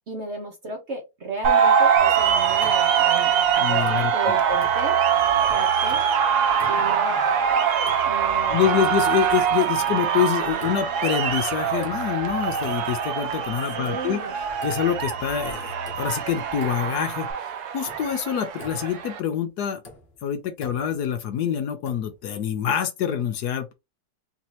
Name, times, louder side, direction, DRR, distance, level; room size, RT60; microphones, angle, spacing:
voice 1, 0.1-3.3 3.6-5.0 5.5-6.0 6.7-7.2 8.0-8.8 13.8-14.3, right 2 dB, 50° right, 0.9 m, -33 dB
sound 1, 1.4-19.2, right 8 dB, 70° right, 1.1 m, -23 dB
sound 2, 2.0-17.3, left 2 dB, 30° right, 1.2 m, -44 dB
sound 3, 2.6-3.3 3.7-4.3 4.6-5.3 5.7-6.2 6.5-7.2 7.6-8.3 8.6-9.2 9.6-10.3 10.6-11.2 11.6-12.3 12.6-13.2 13.5-15.1 15.5-15.6 15.9-17.1 17.4-17.5 17.9-19.1 19.6-21.1 21.8-22.2, left 3 dB, 40° left, 1.0 m, -46 dB
voice 2, 3.6-4.1 8.5-14.2 14.6-19.8 20.2-23.7, left 9 dB, 70° left, 1.1 m, -26 dB
4.0 x 2.9 x 3.0 m
omnidirectional pair, 1.9 m